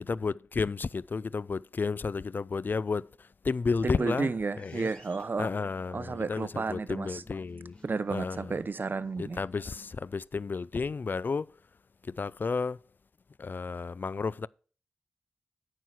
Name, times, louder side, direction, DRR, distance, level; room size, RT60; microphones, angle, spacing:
voice 1, 0.1-3.1 3.4-4.3 4.6-4.9 5.4-7.8 8.1-8.5 9.2-11.5 12.0-12.8 13.4-14.5, left 4 dB, 50° left, 0.4 m, -32 dB
sound 1, 3.5-10.0, left 2 dB, 30° left, 3.2 m, -57 dB
voice 2, 3.8-5.5 5.9-7.2 7.8-9.4, right 4 dB, 50° right, 0.7 m, -32 dB
9.3 x 6.4 x 5.8 m
cardioid pair, 40°, 4 cm